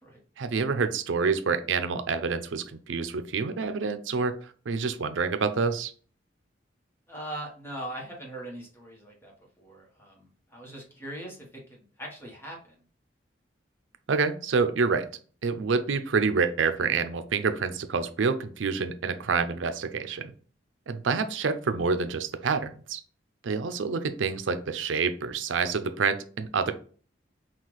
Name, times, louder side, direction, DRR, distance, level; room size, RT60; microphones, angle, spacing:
voice 1, 0.4-4.3 4.7-5.9 14.1-15.1 15.4-20.3 20.9-23.0 23.4-26.7, right 5 dB, 85° right, 10 dB, 0.5 m, -27 dB
voice 2, 7.1-9.3 9.6-11.4 11.7-12.7, right 1 dB, 15° left, -1 dB, 1.1 m, -40 dB
5.7 x 2.4 x 3.1 m, 0.42 s
head